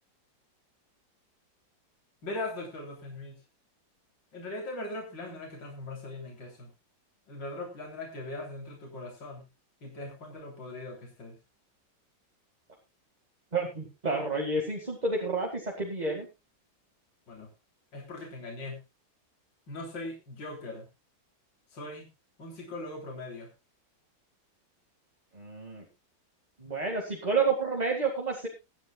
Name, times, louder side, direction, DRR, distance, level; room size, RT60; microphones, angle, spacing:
voice 1, 2.2-3.4 4.3-6.7 7.3-9.4 9.8-11.4 17.3-17.5 17.9-18.8 19.7-20.9 21.7-22.0 22.4-23.5, left 2 dB, 70° left, 0 dB, 4.1 m, -40 dB
voice 2, 13.5-16.3 25.3-25.8 26.6-28.5, right 3 dB, 20° right, 0 dB, 2.1 m, -30 dB
23.5 x 9.4 x 2.4 m, 0.25 s
omnidirectional pair, 2.1 m